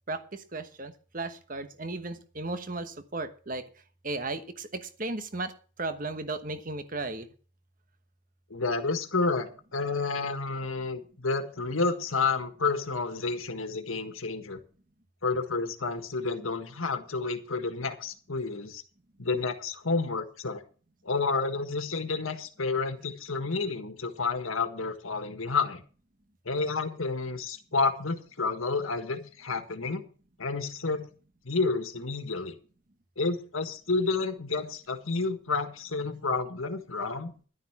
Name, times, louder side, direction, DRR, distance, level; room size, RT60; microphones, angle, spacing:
voice 1, 0.1-3.6 4.0-5.5 5.8-7.3, right 2 dB, 40° right, 10 dB, 1.2 m, -35 dB
voice 2, 8.5-14.6 15.2-18.8 19.2-20.6 21.0-25.8 26.5-30.0 30.4-31.1 31.4-32.5 33.2-37.3, left 4 dB, 85° left, 8 dB, 1.7 m, -30 dB
11.5 x 10.0 x 6.0 m, 0.39 s
head